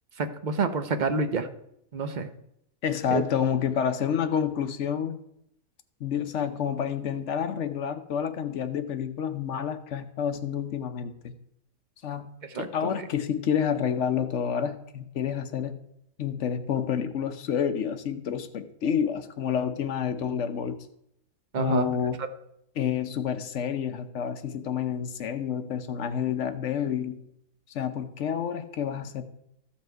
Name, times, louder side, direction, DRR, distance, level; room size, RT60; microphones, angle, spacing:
voice 1, 0.2-1.5 1.9-2.3 3.1-3.2 12.5-12.7 13.0-13.1 21.5-21.9 22.2-22.3, right 4 dB, 40° right, 8 dB, 0.7 m, -28 dB
voice 2, 2.8-5.2 6.0-11.3 12.0-12.3 12.6-15.8 16.2-20.8 21.6-22.2 22.8-27.2 27.7-29.2, left 8 dB, 60° left, 9 dB, 1.0 m, -29 dB
14.5 x 5.8 x 4.5 m, 0.77 s
omnidirectional pair, 1.5 m